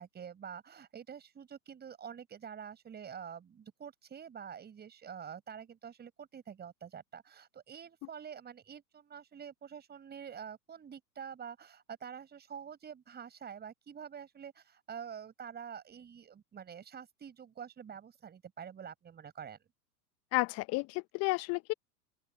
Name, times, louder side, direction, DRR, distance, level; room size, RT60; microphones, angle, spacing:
voice 1, 0.0-19.6, right 7 dB, 20° right, 5.3 m, -47 dB
voice 2, 20.3-21.7, left 24 dB, 30° left, 0.9 m, -32 dB
open air
hypercardioid pair, 100°, 47 cm